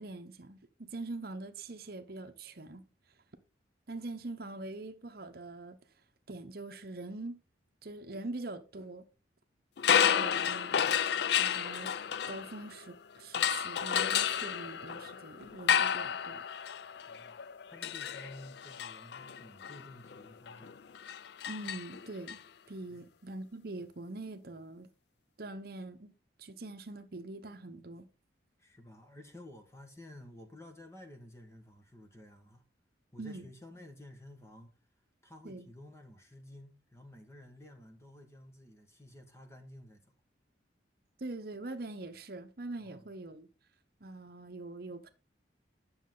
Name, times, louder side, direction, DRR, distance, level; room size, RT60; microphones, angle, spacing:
voice 1, 0.0-2.8 3.9-5.8 6.3-7.4 7.8-9.1 10.1-11.0 11.4-11.9 12.3-16.5 21.5-22.4 22.7-24.9 25.4-26.1 26.4-28.1 33.2-33.5 35.4-35.7 41.2-43.5 44.0-45.1, right 2 dB, 55° right, 0.9 m, -43 dB
sound 1, 9.8-12.9 13.3-22.4, left 8 dB, 60° left, 0.4 m, -31 dB
voice 2, 17.7-20.7 22.9-23.0 28.6-32.6 33.1-34.7 35.2-40.0 42.8-43.1, left 1 dB, 15° left, 1.3 m, -52 dB
10.0 x 6.5 x 3.8 m
head